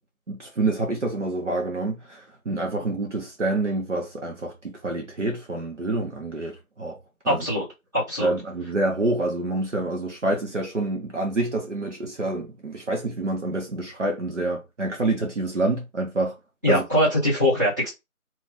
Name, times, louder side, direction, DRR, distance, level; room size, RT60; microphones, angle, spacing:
voice 1, 0.3-7.0 7.2-7.4 8.2-16.4 16.7-16.8, right 2 dB, 55° right, 1.2 m, -27 dB
voice 2, 7.2-7.6 7.9-8.3 16.6-17.9, left 1 dB, 15° right, 1.6 m, -22 dB
3.0 x 2.8 x 3.6 m
figure-of-eight pair, 165°, 42 cm